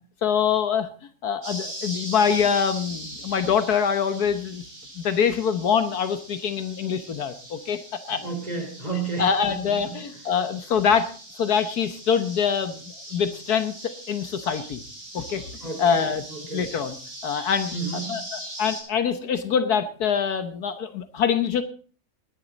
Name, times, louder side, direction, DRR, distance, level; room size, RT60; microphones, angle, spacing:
voice 1, 0.2-0.9 1.2-4.6 5.0-8.2 9.2-11.1 11.3-12.8 13.1-14.8 15.1-15.4 15.8-16.2 16.5-17.0 17.2-17.7 18.1-21.6, left 7 dB, 70° left, 10 dB, 1.6 m, -24 dB
sound 1, 1.4-18.8, right 1 dB, 55° right, 6.4 m, -40 dB
voice 2, 8.2-9.9 15.6-16.6 17.7-18.2, right 4 dB, 25° right, 2 dB, 4.2 m, -32 dB
19.0 x 10.5 x 4.0 m, 0.41 s
omnidirectional pair, 1.7 m